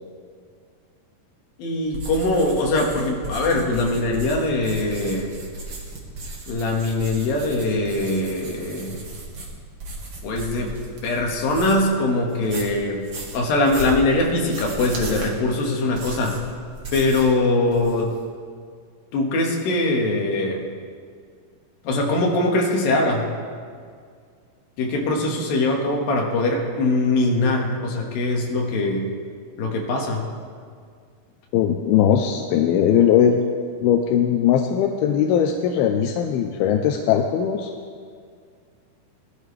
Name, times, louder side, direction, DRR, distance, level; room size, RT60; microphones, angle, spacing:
voice 1, 1.6-5.3 6.5-9.0 10.2-10.8 11.0-13.0 13.3-16.4 16.9-18.1 19.1-20.7 21.8-23.3 24.8-29.1 29.6-30.2, left 2 dB, 70° left, 0 dB, 3.2 m, -22 dB
sound 1, 1.9-11.9 12.3-17.4 17.6-18.2, right 2 dB, 45° right, 1.8 m, -36 dB
voice 2, 31.5-33.4 33.8-37.7, left 9 dB, 85° left, 3 dB, 2.5 m, -19 dB
20.5 x 12.0 x 3.3 m, 2.1 s
omnidirectional pair, 4.5 m